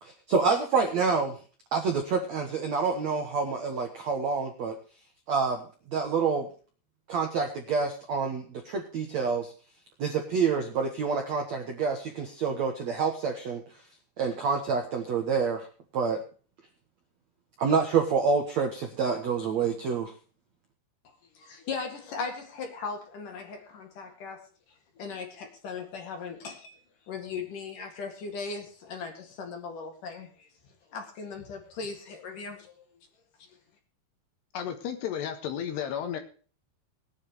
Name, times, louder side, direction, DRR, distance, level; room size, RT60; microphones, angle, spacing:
voice 1, 0.0-1.4 1.7-4.8 5.3-5.6 5.9-6.5 7.1-9.5 10.0-13.6 14.2-15.7 15.9-16.2 17.6-20.1, right 5 dB, 65° right, 4 dB, 1.7 m, -27 dB
voice 2, 21.3-24.5 25.0-26.8 27.1-30.5 30.9-32.8, left 5 dB, 50° left, 5 dB, 3.2 m, -38 dB
voice 3, 34.5-36.2, left 9 dB, 70° left, 7 dB, 3.4 m, -33 dB
21.0 x 9.7 x 3.1 m, 0.39 s
omnidirectional pair, 5.4 m